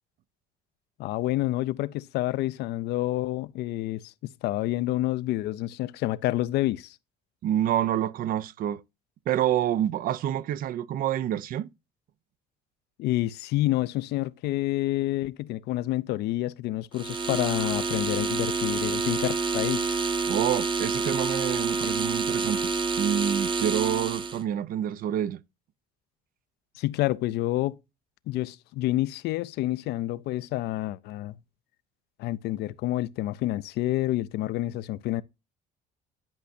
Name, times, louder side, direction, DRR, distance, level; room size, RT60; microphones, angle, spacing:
voice 1, 1.0-4.1 4.4-7.0 13.0-20.0 26.7-27.8 28.3-31.3 32.2-35.2, left 16 dB, 75° left, 0.4 m, -28 dB
voice 2, 7.4-8.8 9.3-11.7 20.3-22.7 23.0-25.4, right 11 dB, 55° right, 0.4 m, -27 dB
sound 1, 16.9-24.4, right 4 dB, 30° right, 0.8 m, -28 dB
10.5 x 5.4 x 2.6 m
cardioid pair, 110°, 17 cm